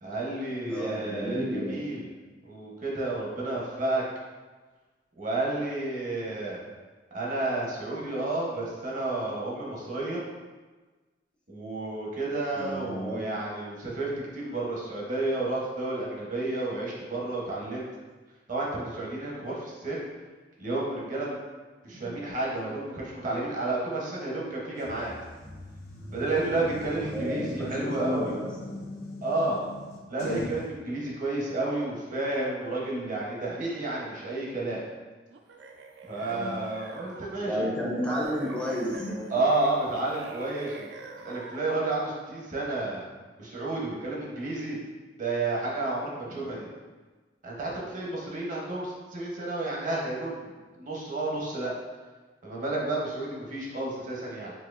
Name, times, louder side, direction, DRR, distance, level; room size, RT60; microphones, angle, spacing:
voice 1, 0.0-2.1 2.4-4.0 5.2-6.6 7.1-10.2 11.5-17.9 18.5-20.1 20.6-21.4 21.8-25.1 26.1-28.3 29.2-29.6 30.1-34.8 36.1-37.7 39.3-40.9 41.2-43.0 43.4-44.8 45.2-46.7 47.4-51.7 52.4-54.5, right 2 dB, 45° right, -4 dB, 0.8 m, -31 dB
voice 2, 0.7-1.8 12.6-13.3 21.9-22.2 27.0-28.8 36.2-36.6 37.5-39.3 46.3-46.6, equal, 5° left, -5 dB, 0.4 m, -32 dB
sound 1, 24.8-30.6, left 1 dB, 70° left, 0.8 m, -39 dB
sound 2, 35.3-37.5 38.0-41.9, right 4 dB, 75° right, 0.3 m, -45 dB
4.1 x 2.7 x 2.4 m, 1.3 s
head